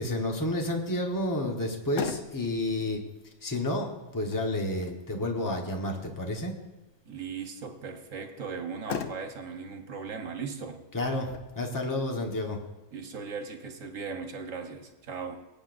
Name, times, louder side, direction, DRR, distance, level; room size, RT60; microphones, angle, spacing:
voice 1, 0.0-3.0 3.4-6.5 10.9-12.6, left 1 dB, 15° left, 1 dB, 1.2 m, -30 dB
Motor vehicle (road), 1.6-14.5, left 7 dB, 80° left, 1.0 m, -44 dB
voice 2, 7.0-10.8 12.9-15.4, right 5 dB, 90° right, 4 dB, 1.6 m, -38 dB
21.5 x 8.7 x 2.6 m, 1.1 s
omnidirectional pair, 1.3 m